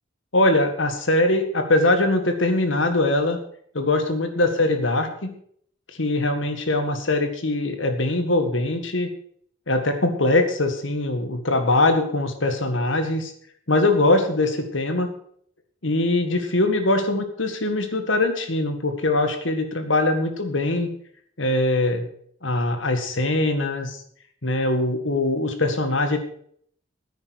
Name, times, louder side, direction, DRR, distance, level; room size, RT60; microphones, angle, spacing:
voice 1, 0.3-3.4 3.7-5.3 6.0-9.1 9.7-13.3 13.7-15.1 15.8-20.9 21.4-22.1 22.4-24.0 24.4-26.2, left 2 dB, 70° left, 7 dB, 1.9 m, -22 dB
10.0 x 9.4 x 6.6 m, 0.62 s
head